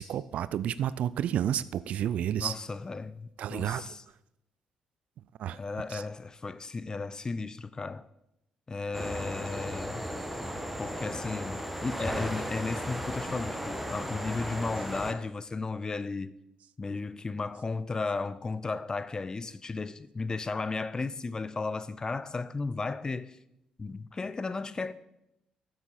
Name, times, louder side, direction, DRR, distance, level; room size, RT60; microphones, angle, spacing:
voice 1, 0.0-2.5 3.4-3.8 5.4-5.6 5.9-6.0, right 10 dB, 60° right, 0.3 m, -30 dB
voice 2, 2.4-4.0 5.5-8.1 8.7-10.0 10.8-16.3 16.8-23.4 23.8-24.9, left 3 dB, 30° left, 0.5 m, -34 dB
sound 1, 8.9-15.1, equal, 5° right, 1.3 m, -35 dB
8.8 x 7.5 x 4.3 m
hypercardioid pair, 50°, 3 cm